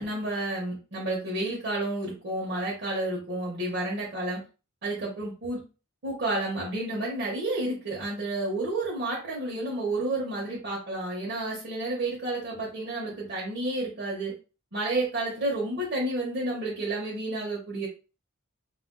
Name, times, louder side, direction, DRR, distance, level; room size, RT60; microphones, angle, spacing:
voice 1, 0.0-4.4 4.8-5.6 6.0-14.3 14.7-17.9, right 2 dB, 55° right, -4 dB, 0.9 m, -30 dB
3.7 x 2.4 x 2.2 m, 0.33 s
head